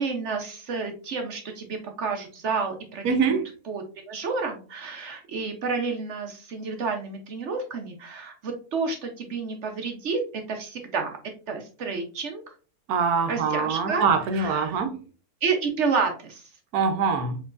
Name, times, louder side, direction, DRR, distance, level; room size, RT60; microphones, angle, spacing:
voice 1, 0.0-3.4 3.7-11.2 11.5-12.4 13.3-14.1 14.3-14.8 15.4-16.5, right 4 dB, 55° right, 4 dB, 0.9 m, -30 dB
voice 2, 3.0-3.4 12.9-15.0 16.7-17.4, right 5 dB, 80° right, 7 dB, 1.2 m, -24 dB
4.5 x 3.8 x 2.4 m, 0.37 s
omnidirectional pair, 1.6 m